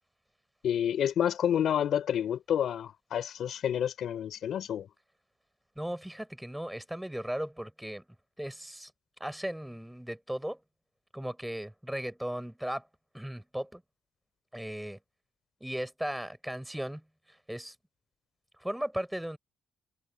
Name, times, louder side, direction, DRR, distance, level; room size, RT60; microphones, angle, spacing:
voice 1, 0.6-4.9, left 9 dB, 70° left, 3.5 m, -29 dB
voice 2, 5.7-8.0 8.4-8.9 9.2-10.6 11.1-12.9 13.1-13.8 14.5-15.0 15.6-17.7 18.6-19.4, equal, 5° right, 5.0 m, -37 dB
cardioid pair, 90°, 0 cm